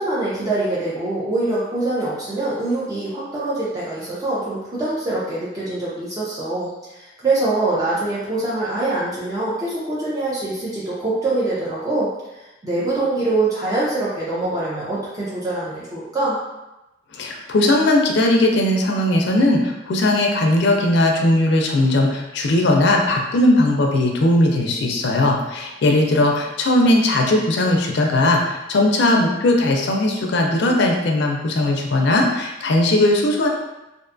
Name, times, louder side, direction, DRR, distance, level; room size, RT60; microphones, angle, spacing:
voice 1, 0.0-12.1 12.6-16.4, right 2 dB, 20° right, -8 dB, 0.4 m, -24 dB
voice 2, 17.1-33.5, left 1 dB, 60° left, 1 dB, 0.4 m, -18 dB
2.5 x 2.2 x 2.5 m, 0.97 s
head